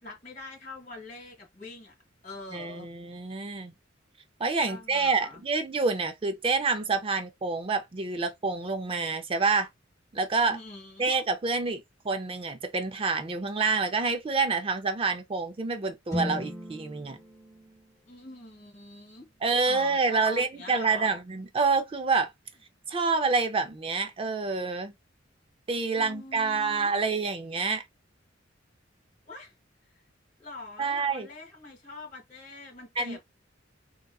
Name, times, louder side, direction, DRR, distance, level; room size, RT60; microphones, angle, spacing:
voice 1, 0.0-1.9 2.2-2.9 4.7-5.4 10.5-11.1 18.1-19.3 19.6-21.1 25.9-26.9 29.3-29.5 29.9-30.0 30.4-33.2, left 2 dB, 40° left, 1.9 m, -44 dB
voice 2, 2.5-3.7 4.4-9.7 10.1-10.6 11.0-17.2 19.4-22.3 22.9-24.9 25.7-27.8 30.8-31.3 33.0-33.2, right 4 dB, 30° right, 0.4 m, -27 dB
sound 1, 16.1-20.1, left 1 dB, 15° left, 2.0 m, -39 dB
3.6 x 2.8 x 2.3 m
head